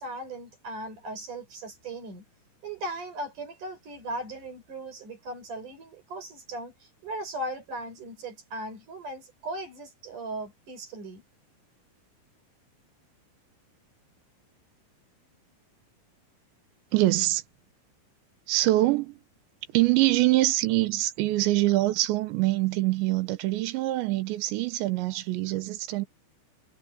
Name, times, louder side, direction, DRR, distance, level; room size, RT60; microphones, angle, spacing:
voice 1, 0.0-2.2 2.6-11.2, right 1 dB, 45° right, 7.0 m, -38 dB
voice 2, 16.9-17.4 18.5-19.2 19.7-26.1, right 17 dB, 80° right, 3.3 m, -24 dB
omnidirectional pair, 5.1 m